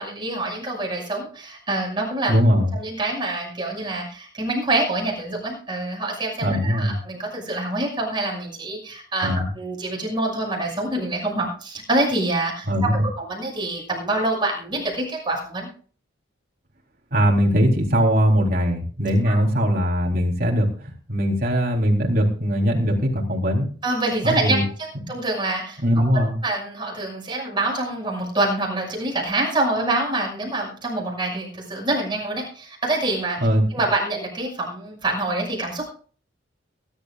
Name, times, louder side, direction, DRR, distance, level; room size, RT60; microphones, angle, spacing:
voice 1, 0.0-2.3 2.7-9.3 9.6-12.9 13.2-15.7 19.3-19.4 23.8-25.8 26.4-33.4 33.7-35.9, right 2 dB, 25° right, -1 dB, 6.3 m, -26 dB
voice 2, 2.3-2.7 6.4-7.0 9.2-9.5 12.7-13.0 17.1-23.7 24.2-24.6 25.8-26.3 33.4-33.6, equal, 50° right, 0 dB, 3.6 m, -20 dB
22.5 x 12.0 x 2.5 m, 0.42 s
head